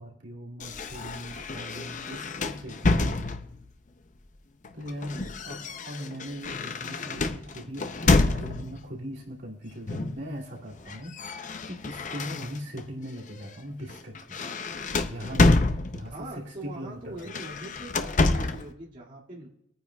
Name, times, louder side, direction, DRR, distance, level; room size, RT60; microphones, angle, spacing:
voice 1, 0.0-3.4 4.7-11.2 11.6-14.4 15.0-15.6 15.9-17.4, equal, 65° right, -3 dB, 2.5 m, -40 dB
sound 1, 0.6-3.7 4.6-8.8 9.9-10.2 10.5-12.8 13.3-13.5 13.9-16.3 17.2-18.7, left 2 dB, 45° left, 0.6 m, -27 dB
voice 2, 16.0-19.5, right 1 dB, 45° right, -6 dB, 2.2 m, -42 dB
24.0 x 9.4 x 2.3 m, 0.81 s
head